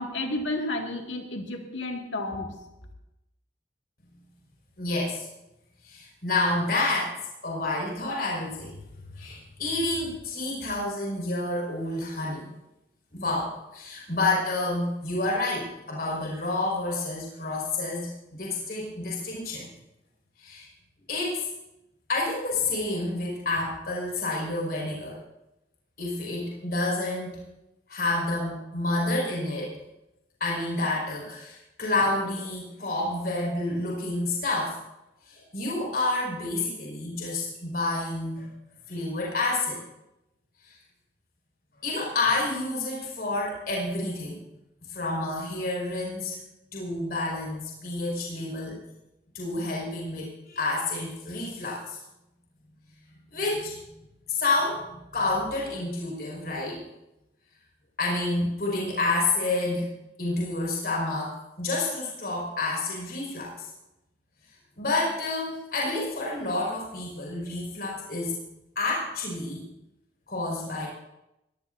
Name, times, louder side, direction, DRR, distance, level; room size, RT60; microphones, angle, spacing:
voice 1, 0.0-2.5, left 2 dB, 85° left, 2 dB, 2.0 m, -31 dB
voice 2, 4.8-5.3 5.8-7.1 7.4-8.8 9.2-12.5 13.1-19.7 20.4-20.7 21.1-21.4 22.1-25.2 26.0-27.4 27.9-29.8 30.4-34.8 35.3-38.5 38.9-39.8 40.6-40.7 41.8-44.4 44.9-46.4 46.7-48.8 49.3-52.0 53.3-53.8 54.3-54.8 55.1-56.8 58.0-59.9 60.2-63.5 64.8-68.3 68.8-69.6 70.3-70.9, left 2 dB, 55° left, -4 dB, 5.1 m, -29 dB
22.0 x 16.0 x 2.6 m, 0.89 s
head